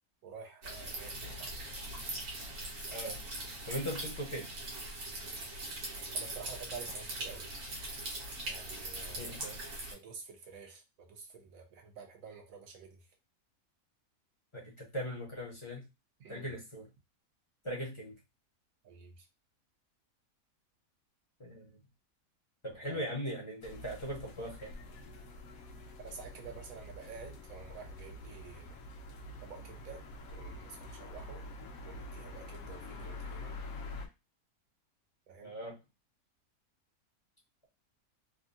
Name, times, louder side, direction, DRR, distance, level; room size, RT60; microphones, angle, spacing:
voice 1, 0.2-1.7 6.1-7.5 8.4-9.4 9.9-13.0 16.2-16.5 18.8-19.3 22.8-23.1 26.0-28.8 29.4-30.0 30.3-31.4 31.8-33.5 35.3-35.5, right 6 dB, 65° right, 3 dB, 1.2 m, -49 dB
sound 1, 0.6-9.9, right 1 dB, 85° right, 1.6 m, -41 dB
voice 2, 3.7-4.5 9.1-9.6 14.5-15.9 16.3-16.9 17.6-18.1 21.4-21.7 22.6-24.7 35.4-35.8, equal, 30° left, -4 dB, 0.6 m, -39 dB
sound 2, 23.6-34.1, left 2 dB, 70° left, 1.0 m, -46 dB
3.6 x 2.1 x 2.5 m, 0.26 s
omnidirectional pair, 1.6 m